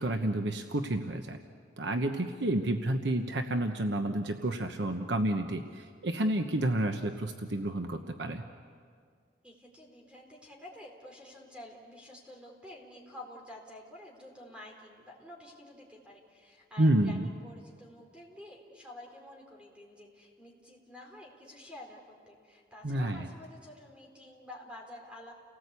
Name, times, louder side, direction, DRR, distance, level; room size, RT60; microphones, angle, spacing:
voice 1, 0.0-1.4 1.8-8.4 16.8-17.3 22.8-23.3, right 1 dB, 80° right, 5 dB, 1.1 m, -30 dB
voice 2, 9.4-25.3, left 1 dB, 5° right, 0 dB, 4.2 m, -50 dB
29.5 x 19.0 x 8.3 m, 2.1 s
head